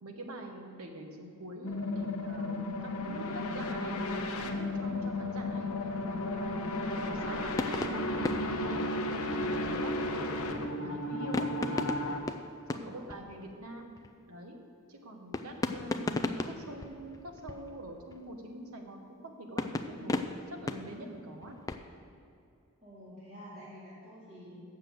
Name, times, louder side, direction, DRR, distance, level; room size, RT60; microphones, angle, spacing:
voice 1, 0.0-5.7 6.0-8.9 9.2-10.3 10.6-11.8 12.7-14.0 14.3-14.6 14.9-21.6, right 1 dB, 80° right, 3 dB, 1.2 m, -45 dB
sound 1, 1.6-12.2, left 1 dB, 80° left, 0.9 m, -34 dB
sound 2, 7.4-10.2 11.3-13.7 14.0-14.2 15.3-18.3 19.6-21.8, left 2 dB, 15° left, 0.3 m, -37 dB
voice 2, 12.7-13.4 22.8-24.6, equal, 30° right, -10 dB, 2.1 m, -50 dB
7.3 x 6.8 x 7.7 m, 2.4 s
head